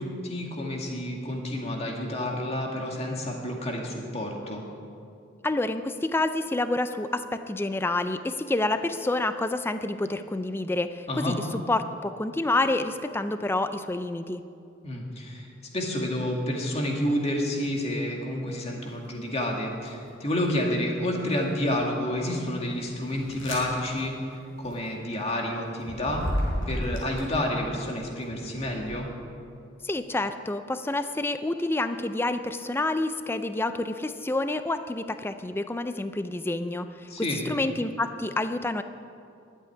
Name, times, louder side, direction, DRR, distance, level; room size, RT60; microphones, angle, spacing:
voice 1, 0.0-4.6 11.1-11.4 14.8-26.2 26.7-29.1 37.1-37.4, left 1 dB, 30° left, 0 dB, 2.1 m, -29 dB
voice 2, 5.4-11.3 11.7-14.4 29.8-38.8, left 2 dB, 10° left, 10 dB, 0.4 m, -28 dB
sound 1, 18.9-19.2 19.8-20.6 21.2-27.6 28.2-28.9, equal, 80° left, 4.2 m, -35 dB
12.0 x 8.3 x 9.9 m, 2.5 s
head